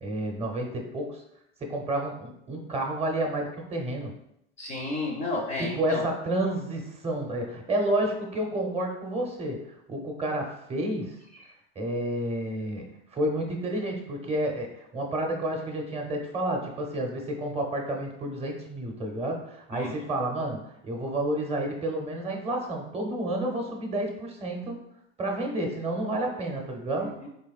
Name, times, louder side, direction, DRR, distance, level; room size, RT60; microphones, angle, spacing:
voice 1, 0.0-1.2 1.6-4.2 5.6-11.2 11.8-24.8 25.2-27.1, right 1 dB, 20° right, 2 dB, 0.7 m, -30 dB
voice 2, 4.6-6.0 19.7-19.9 27.0-27.3, left 2 dB, 20° left, 0 dB, 0.4 m, -32 dB
3.9 x 3.2 x 2.4 m, 0.79 s
supercardioid pair, 120°, 32 cm